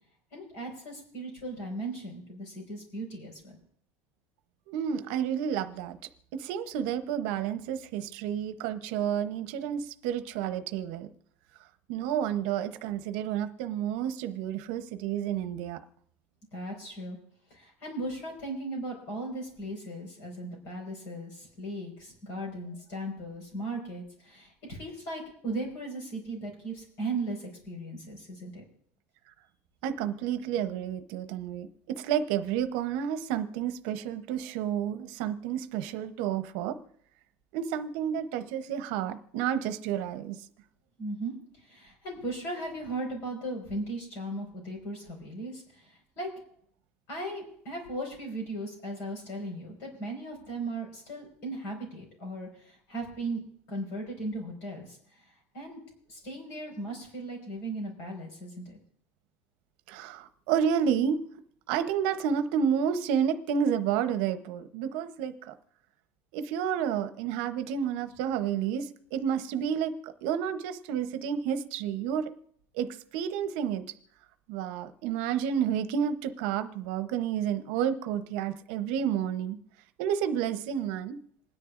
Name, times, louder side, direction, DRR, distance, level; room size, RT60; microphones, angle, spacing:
voice 1, 0.3-3.6 16.5-17.2 17.5-28.6 41.0-41.3 41.6-46.3 47.1-55.0 55.5-55.8 56.1-58.8, right 2 dB, 50° left, 1 dB, 5.1 m, -37 dB
voice 2, 4.7-6.0 6.4-11.1 11.9-15.8 29.8-36.8 37.5-40.4 59.9-61.2 61.7-65.5 66.3-69.9 70.2-72.3 72.7-72.9 73.1-73.8 74.5-79.6 80.0-81.2, right 8 dB, 70° right, 10 dB, 0.8 m, -30 dB
27.5 x 10.0 x 2.5 m, 0.66 s
cardioid pair, 180°, 6 cm